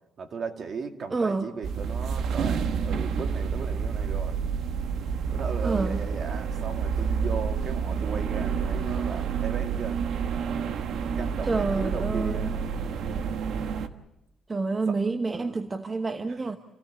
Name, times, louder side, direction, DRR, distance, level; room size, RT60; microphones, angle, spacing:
voice 1, 0.2-4.4 5.3-10.0 11.1-12.6 14.9-15.0 15.3-15.8, right 5 dB, 45° right, 5 dB, 2.2 m, -37 dB
voice 2, 1.1-1.5 5.6-6.0 11.4-12.5 14.5-16.6, right 3 dB, 25° right, 7 dB, 1.0 m, -28 dB
sound 1, 1.6-13.9, right 6 dB, 65° right, 1.3 m, -29 dB
29.0 x 17.0 x 7.3 m, 0.93 s
cardioid pair, 120°, 0 cm